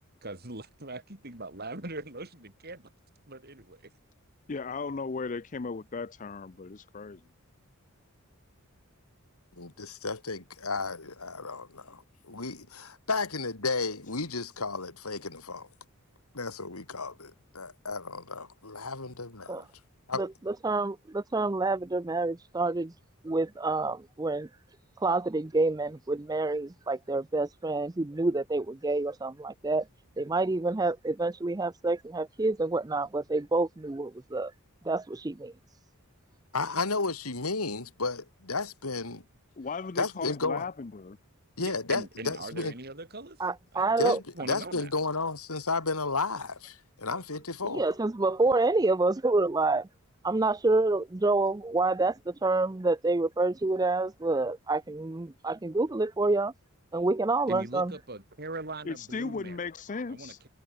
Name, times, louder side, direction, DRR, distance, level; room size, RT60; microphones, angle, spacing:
voice 1, 0.2-2.9 3.3-3.8 41.6-43.4 43.7-43.8 44.3-44.9 57.5-59.6 60.1-60.5, right 2 dB, 45° right, 4.6 m, -41 dB
voice 2, 4.5-7.2 39.6-41.2 58.8-60.4, left 4 dB, 35° left, 0.5 m, -36 dB
voice 3, 9.6-15.7 16.3-19.6 20.1-20.3 36.5-39.2 40.0-40.6 41.6-42.7 44.0-47.9, left 3 dB, 80° left, 3.2 m, -33 dB
voice 4, 20.2-22.9 23.2-24.5 25.0-29.9 30.2-34.5 34.8-35.5 43.4-44.2 47.7-49.9 50.2-56.5 56.9-57.9, right 2 dB, 15° right, 0.5 m, -28 dB
head